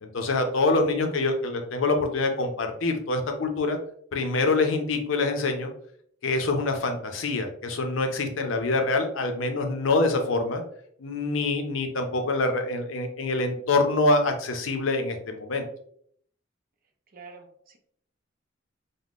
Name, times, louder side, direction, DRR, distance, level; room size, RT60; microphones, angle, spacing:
voice 1, 0.0-3.8 4.1-5.7 6.2-10.6 11.0-15.7, left 2 dB, 85° left, 5 dB, 0.5 m, -25 dB
voice 2, 17.1-17.8, right 4 dB, 50° right, 3 dB, 0.5 m, -46 dB
3.5 x 2.0 x 2.4 m, 0.63 s
head